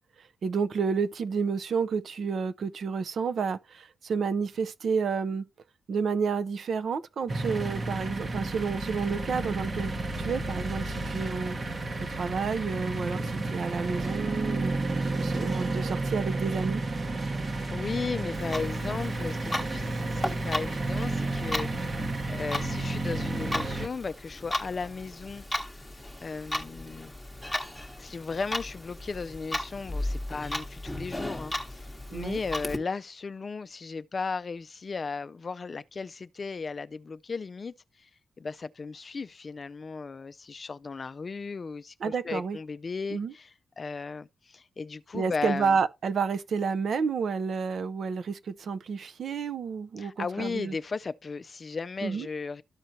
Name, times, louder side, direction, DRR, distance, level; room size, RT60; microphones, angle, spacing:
voice 1, 0.4-5.5 5.9-9.9 10.2-11.6 12.1-14.7 15.1-16.8 32.1-32.4 42.0-42.6 43.1-43.3 45.1-50.8 52.0-52.3, right 5 dB, 65° right, 0.5 m, -30 dB
sound 1, 7.3-23.9, right 2 dB, 35° right, 0.9 m, -31 dB
voice 2, 17.2-21.9 22.3-25.4 26.2-27.1 28.0-38.1 38.4-45.8 50.0-52.6, left 4 dB, 40° left, 0.4 m, -36 dB
Clock, 18.3-32.8, left 1 dB, 5° left, 1.0 m, -36 dB
13.0 x 4.5 x 2.6 m
wide cardioid pair, 120°, 0 cm